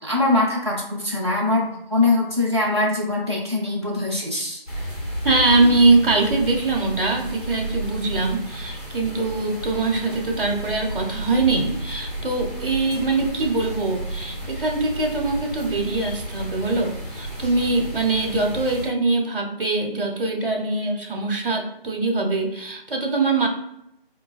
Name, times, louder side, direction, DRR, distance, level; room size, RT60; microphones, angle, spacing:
voice 1, 0.0-4.6, left 2 dB, 30° right, -4 dB, 0.7 m, -22 dB
sound 1, 4.7-18.9, right 1 dB, 40° left, 1.1 m, -32 dB
voice 2, 5.2-23.5, right 3 dB, 60° right, 2 dB, 0.9 m, -22 dB
4.5 x 2.3 x 2.4 m, 0.82 s
figure-of-eight pair, 170°, 30 cm